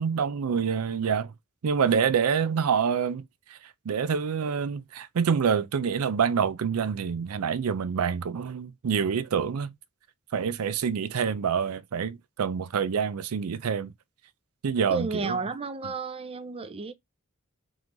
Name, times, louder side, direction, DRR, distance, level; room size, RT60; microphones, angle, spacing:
voice 1, 0.0-1.3 1.6-3.2 3.9-9.7 10.3-13.9 14.6-15.4, right 6 dB, 85° right, 0.4 m, -26 dB
voice 2, 14.9-16.9, right 3 dB, 25° right, 0.5 m, -32 dB
3.7 x 3.1 x 3.8 m
head